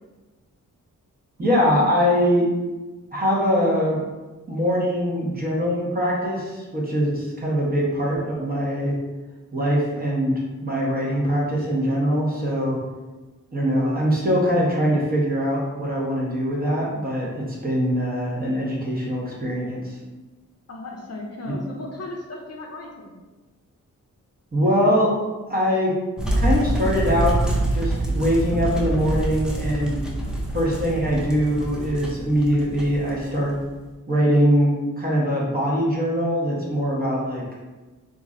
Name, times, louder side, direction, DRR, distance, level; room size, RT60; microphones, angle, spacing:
voice 1, 1.4-2.5 3.1-4.0 4.5-8.9 9.5-10.3 10.6-12.8 13.5-20.0 21.5-21.6 24.5-25.1 25.5-25.9 26.4-30.0 30.5-33.6 34.1-37.4, equal, 30° right, -4 dB, 0.9 m, -22 dB
voice 2, 20.7-23.2, left 2 dB, 50° left, 0 dB, 0.6 m, -36 dB
sound 1, 26.2-33.8, right 1 dB, ahead, 0.6 m, -26 dB
3.0 x 2.5 x 2.5 m, 1.2 s
cardioid pair, 65°, 32 cm